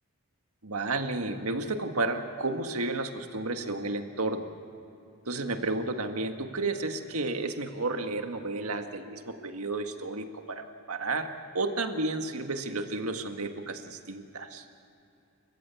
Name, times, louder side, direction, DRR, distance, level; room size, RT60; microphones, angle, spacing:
voice 1, 0.6-4.5 5.3-11.3 11.5-14.7, right 2 dB, 75° right, 6 dB, 1.7 m, -32 dB
29.5 x 15.0 x 8.4 m, 2.7 s
head